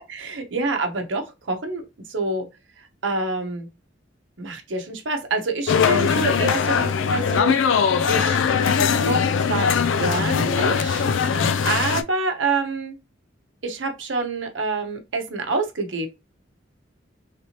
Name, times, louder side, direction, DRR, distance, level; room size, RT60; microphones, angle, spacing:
voice 1, 0.1-1.8 2.1-2.5 2.8-3.7 4.4-8.4 9.0-9.7 10.0-12.9 13.6-16.1, right 3 dB, 80° right, 0.8 m, -27 dB
sound 1, 5.7-12.0, left 6 dB, 90° left, 0.4 m, -21 dB
3.3 x 2.9 x 2.8 m
head